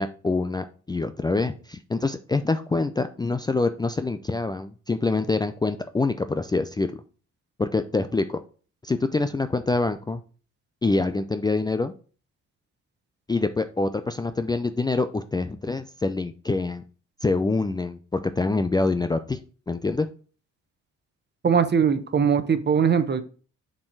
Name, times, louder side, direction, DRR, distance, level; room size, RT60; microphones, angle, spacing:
voice 1, 0.0-7.0 7.6-8.4 8.8-10.2 10.8-11.9 13.3-16.8 17.2-19.4 19.7-20.1, left 3 dB, 15° left, 10 dB, 0.4 m, -25 dB
voice 2, 21.4-23.2, right 7 dB, 35° right, 11 dB, 1.0 m, -21 dB
7.4 x 4.5 x 4.6 m, 0.39 s
cardioid pair, 90°, 30 cm